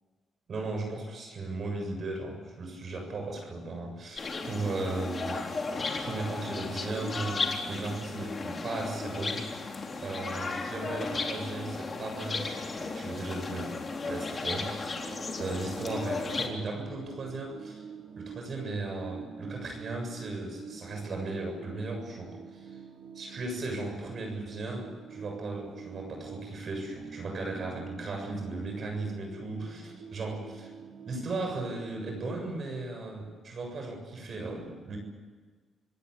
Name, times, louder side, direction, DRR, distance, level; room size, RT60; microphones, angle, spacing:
voice 1, 0.5-5.4 5.7-15.1 15.4-17.9 18.2-22.8 23.1-30.7 31.1-35.0, right 2 dB, 50° right, 3 dB, 7.3 m, -36 dB
sound 1, 4.2-16.5, left 3 dB, 35° left, 3.7 m, -35 dB
sound 2, 14.8-32.4, right 6 dB, 65° right, 2.4 m, -46 dB
26.5 x 18.5 x 8.6 m, 1.5 s
cardioid pair, 90°, 0 cm